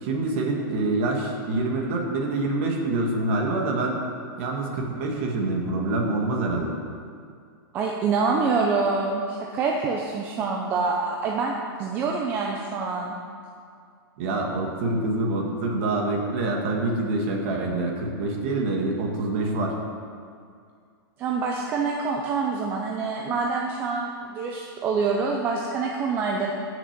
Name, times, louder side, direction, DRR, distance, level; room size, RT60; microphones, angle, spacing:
voice 1, 0.0-4.0 4.4-6.7 14.2-19.7, right 2 dB, 30° right, 1 dB, 1.6 m, -26 dB
voice 2, 7.7-11.5 11.8-13.1 21.2-26.5, right 4 dB, 15° right, 0 dB, 0.5 m, -26 dB
13.5 x 6.4 x 5.9 m, 2.2 s
supercardioid pair, 180°, 12 cm